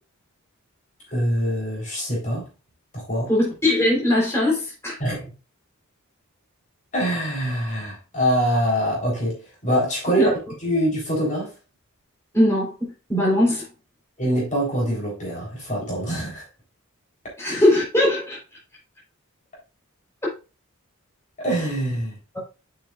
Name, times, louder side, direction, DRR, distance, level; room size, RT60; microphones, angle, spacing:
voice 1, 1.1-2.5 2.9-3.3 5.0-5.3 6.9-10.3 10.6-11.5 14.2-16.4 21.4-22.1, equal, 35° left, 4.1 m, -24 dB
voice 2, 3.3-5.0 10.2-10.3 12.3-13.6 17.4-18.4, left 1 dB, 10° left, 4.0 m, -20 dB
8.0 x 6.7 x 2.5 m
head